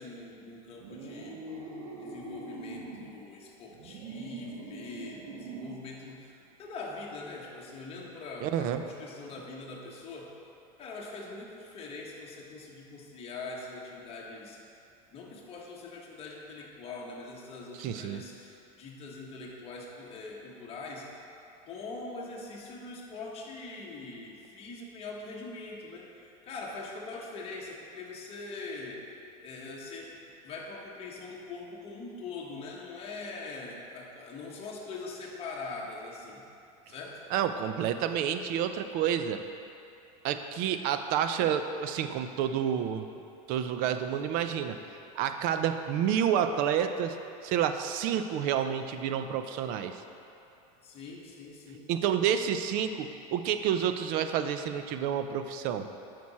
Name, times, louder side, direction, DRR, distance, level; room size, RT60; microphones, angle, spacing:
voice 1, 0.0-1.4 2.0-10.3 10.8-14.6 15.1-21.2 21.6-29.1 29.4-30.2 30.4-36.5 36.9-37.2 50.8-51.9, left 3 dB, 30° left, -2 dB, 1.3 m, -42 dB
sound 1, 0.8-3.1 3.7-5.9, right 3 dB, 70° right, 1.3 m, -42 dB
voice 2, 8.4-8.8 17.8-18.2 37.3-39.4 40.2-43.1 43.5-44.8 45.1-47.2 47.4-50.0 51.9-55.9, right 9 dB, 50° right, 8 dB, 0.5 m, -29 dB
9.5 x 6.0 x 4.2 m, 2.7 s
supercardioid pair, 145°, 19 cm